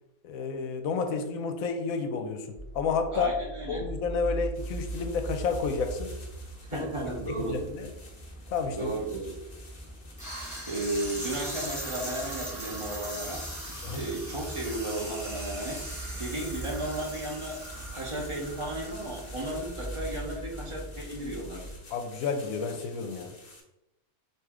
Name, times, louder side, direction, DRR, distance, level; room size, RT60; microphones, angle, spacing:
voice 1, 0.2-2.5 2.7-3.3 3.7-6.1 6.7-6.9 7.4-7.9 8.5-8.9 13.8-14.0 21.9-23.3, left 5 dB, 70° left, 6 dB, 1.0 m, -30 dB
sound 1, 2.5-21.8, right 1 dB, 5° right, 1.3 m, -41 dB
voice 2, 3.1-3.9 6.7-7.6 8.7-9.4 10.3-10.4 10.7-17.6 17.9-21.6, right 1 dB, 30° right, -2 dB, 0.6 m, -34 dB
sound 2, 4.5-23.6, left 2 dB, 45° left, 0.6 m, -52 dB
sound 3, 10.2-20.0, equal, 10° left, 1.5 m, -40 dB
4.8 x 2.7 x 3.6 m, 0.91 s
omnidirectional pair, 1.6 m